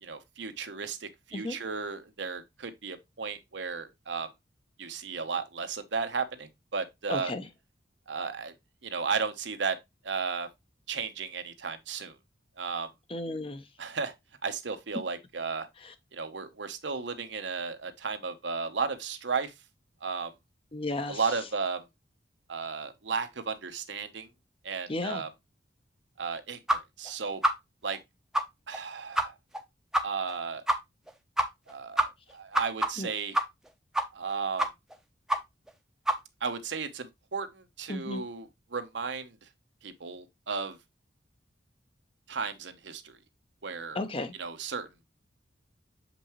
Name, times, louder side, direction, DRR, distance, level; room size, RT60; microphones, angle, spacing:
voice 1, 0.0-4.3 4.8-7.3 8.1-8.5 8.8-9.8 10.0-10.5 10.9-12.1 12.6-12.9 13.8-14.1 14.4-15.7 16.1-19.5 20.0-20.3 21.1-21.8 22.5-24.3 24.6-25.3 26.2-27.4 27.8-28.0 28.7-29.3 30.0-30.6 31.7-33.3 34.1-34.7 36.4-39.4 39.8-40.8 42.3-43.2 43.6-44.0 44.3-45.0, right 5 dB, 80° right, 1.0 m, -34 dB
voice 2, 7.1-7.5 13.1-13.6 20.7-21.2 24.9-25.2 33.0-33.1 37.9-38.2 43.9-44.3, left 2 dB, 30° left, 0.8 m, -33 dB
sound 1, 26.7-26.8 27.0-27.1 27.4-27.5 27.9-28.0 28.3-28.4 28.7-28.8 29.1-29.2 29.5-29.6 29.9-30.0 30.3-30.4 30.7-30.8 31.1-31.2 31.4-31.7 32.0-33.7 33.9-34.3 34.6-34.9 35.3-35.4 35.7-35.8 36.1-36.2, right 1 dB, 5° right, 0.7 m, -26 dB
6.8 x 5.2 x 3.0 m
head